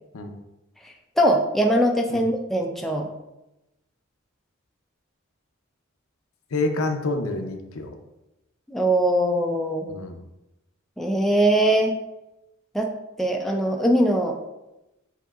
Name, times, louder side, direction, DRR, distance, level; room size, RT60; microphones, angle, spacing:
voice 1, 1.2-3.1 8.7-9.9 11.0-11.9 12.7-12.9 13.2-14.4, right 1 dB, ahead, 1 dB, 0.3 m, -21 dB
voice 2, 6.5-8.0 9.9-10.2, left 2 dB, 80° left, 5 dB, 0.6 m, -28 dB
7.6 x 2.8 x 2.4 m, 0.94 s
head